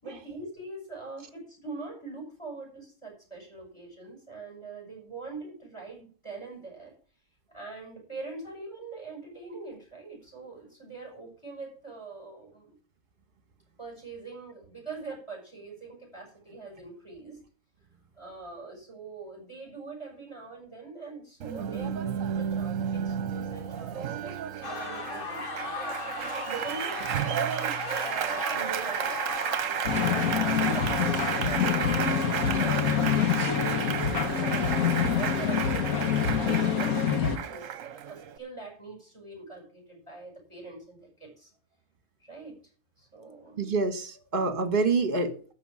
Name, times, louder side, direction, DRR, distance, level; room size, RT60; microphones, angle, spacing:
voice 1, 0.0-6.9 7.5-12.8 13.8-17.4 18.1-30.0 30.5-41.5 42.2-42.5 43.0-43.6, right 3 dB, 20° left, -1 dB, 6.5 m, -43 dB
Applause, 21.4-38.4, right 9 dB, 70° right, 1.1 m, -32 dB
sound 1, 24.6-35.3, left 3 dB, 40° left, 1.5 m, -38 dB
sound 2, 29.9-37.4, left 8 dB, 85° left, 1.6 m, -26 dB
voice 2, 43.6-45.5, right 3 dB, 40° right, 10 dB, 1.7 m, -27 dB
13.0 x 5.0 x 8.5 m, 0.43 s
omnidirectional pair, 1.5 m